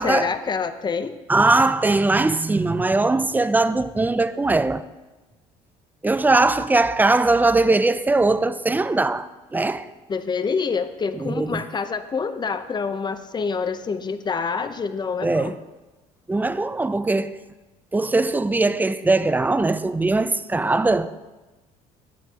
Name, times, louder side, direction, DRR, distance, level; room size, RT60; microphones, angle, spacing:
voice 1, 0.0-1.1 10.1-15.6, left 5 dB, 30° left, 0.8 m, -26 dB
voice 2, 1.3-4.8 6.0-9.9 11.1-11.6 15.2-15.6 16.3-17.4 17.9-21.2, right 2 dB, 10° right, 0.5 m, -20 dB
15.5 x 9.5 x 2.9 m
supercardioid pair, 90°, 15 cm